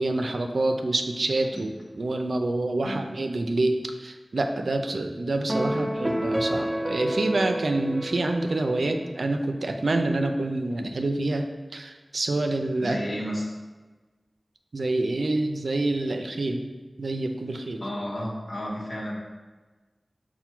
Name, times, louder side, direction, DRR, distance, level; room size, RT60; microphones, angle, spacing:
voice 1, 0.0-13.0 14.7-16.7 17.0-17.8, right 2 dB, 85° right, 5 dB, 0.3 m, -27 dB
sound 1, 5.5-9.0, equal, 20° right, 0.4 m, -29 dB
voice 2, 12.8-13.5 17.8-19.2, equal, 80° left, -5 dB, 0.9 m, -32 dB
5.6 x 2.1 x 4.4 m, 1.3 s
wide cardioid pair, 60°, 0 cm